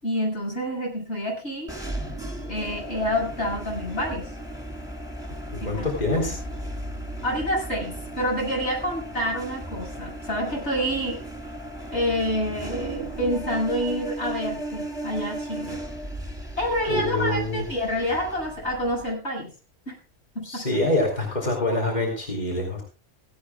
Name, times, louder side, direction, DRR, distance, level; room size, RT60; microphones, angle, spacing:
voice 1, 0.0-1.8 2.5-4.3 5.6-6.2 7.2-11.2 11.9-15.8 16.6-19.5 19.9-20.0 20.3-20.8, equal, 70° left, -1 dB, 8.0 m, -28 dB
sound 1, 1.7-19.1, right 1 dB, 5° right, 3.4 m, -36 dB
voice 2, 5.5-6.4 16.9-17.7 20.4-22.8, left 1 dB, 35° left, 0 dB, 4.1 m, -25 dB
18.0 x 17.0 x 2.4 m, 0.34 s
omnidirectional pair, 1.2 m